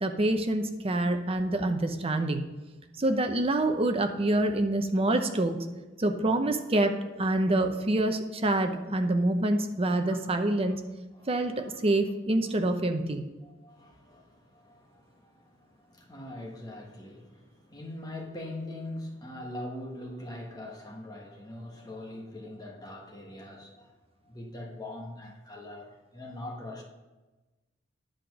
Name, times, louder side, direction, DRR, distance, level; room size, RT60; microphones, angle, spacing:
voice 1, 0.0-2.4 3.0-5.6 6.0-6.9 7.2-10.8 11.3-13.2, right 1 dB, 30° right, 6 dB, 0.7 m, -26 dB
voice 2, 13.4-23.9 24.2-26.8, left 1 dB, 20° left, -1 dB, 1.2 m, -42 dB
9.9 x 5.0 x 6.0 m, 1.2 s
head